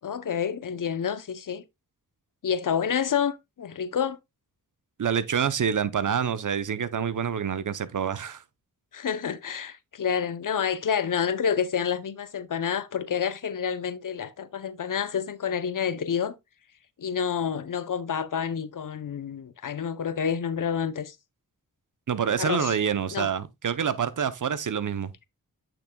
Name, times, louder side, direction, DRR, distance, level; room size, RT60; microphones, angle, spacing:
voice 1, 0.0-1.6 2.4-4.2 8.9-16.3 17.0-21.2 22.4-22.8 23.1-23.3, left 7 dB, 60° left, 0.8 m, -28 dB
voice 2, 5.0-8.4 22.1-25.1, right 7 dB, 55° right, 0.8 m, -27 dB
8.7 x 6.0 x 2.3 m
cardioid pair, 55°, 36 cm